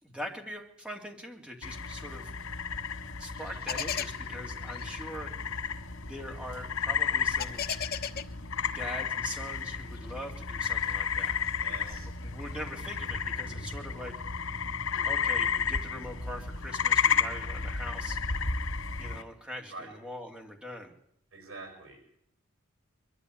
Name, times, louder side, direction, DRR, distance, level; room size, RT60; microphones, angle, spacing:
voice 1, 0.0-2.3 3.1-5.3 6.1-7.6 8.7-11.4 11.7-14.1 15.0-18.2 19.0-20.9, equal, 5° right, 2 dB, 2.8 m, -42 dB
sound 1, 1.6-19.2, left 6 dB, 90° left, 2.2 m, -32 dB
sound 2, 3.3-9.4 9.9-12.5, left 7 dB, 50° left, 1.1 m, -39 dB
voice 2, 11.6-12.1 19.7-19.9 21.3-22.0, right 3 dB, 80° right, 5 dB, 5.2 m, -45 dB
22.5 x 13.0 x 9.8 m, 0.70 s
head